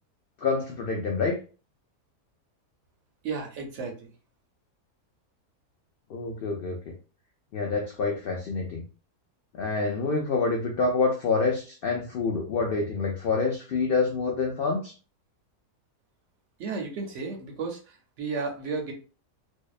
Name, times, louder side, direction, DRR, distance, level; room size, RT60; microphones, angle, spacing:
voice 1, 0.4-1.4 6.1-6.9 7.5-8.9 9.5-14.9, left 4 dB, 85° left, 1 dB, 0.5 m, -27 dB
voice 2, 3.2-4.1 16.6-18.9, right 4 dB, 65° right, 2 dB, 0.8 m, -33 dB
2.6 x 2.1 x 2.3 m, 0.36 s
omnidirectional pair, 1.5 m